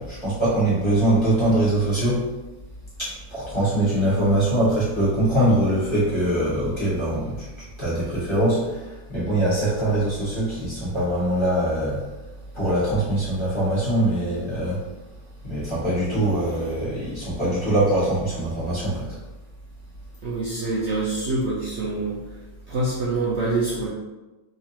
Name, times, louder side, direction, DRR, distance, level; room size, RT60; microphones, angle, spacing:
voice 1, 0.0-2.2 3.0-12.0 12.5-14.8 15.4-19.1, right 1 dB, 20° left, -10 dB, 1.5 m, -23 dB
voice 2, 20.2-22.2 22.7-23.9, right 2 dB, 55° right, -7 dB, 0.9 m, -25 dB
3.7 x 3.2 x 2.9 m, 1.1 s
omnidirectional pair, 1.7 m